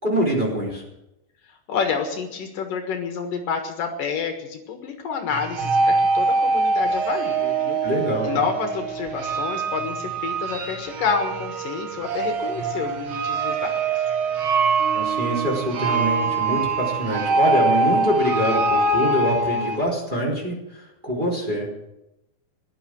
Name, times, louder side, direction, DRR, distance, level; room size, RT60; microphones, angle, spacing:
voice 1, 0.0-0.8 7.8-8.4 14.9-21.7, equal, 10° right, -2 dB, 3.9 m, -24 dB
voice 2, 1.7-7.8 8.2-14.0, left 6 dB, 70° left, 4 dB, 3.1 m, -28 dB
sound 1, 5.3-19.8, right 3 dB, 65° right, 1.3 m, -23 dB
17.5 x 12.0 x 6.3 m, 0.87 s
omnidirectional pair, 4.2 m